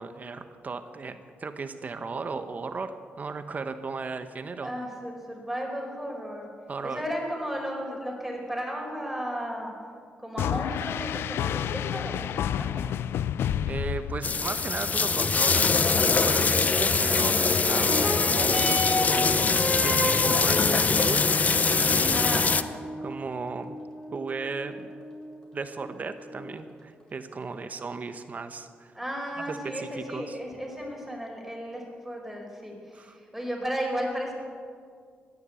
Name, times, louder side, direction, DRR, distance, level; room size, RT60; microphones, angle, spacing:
voice 1, 0.0-4.7 6.7-7.0 13.6-21.3 21.7-22.3 23.0-23.7 24.1-24.9 25.5-29.0 29.5-30.4 32.9-33.2, right 4 dB, 40° right, 9 dB, 0.9 m, -35 dB
voice 2, 4.6-6.5 6.8-9.7 10.2-12.9 22.1-22.7 28.9-34.3, equal, 5° right, -1 dB, 4.8 m, -34 dB
sound 1, 10.4-14.7, left 10 dB, 85° left, 0.4 m, -30 dB
sound 2, 14.2-22.6, left 4 dB, 40° left, 0.7 m, -23 dB
sound 3, 17.7-26.7 27.5-27.6, equal, 20° left, 4.6 m, -34 dB
15.5 x 11.0 x 8.3 m, 2.1 s
cardioid pair, 80°, 4 cm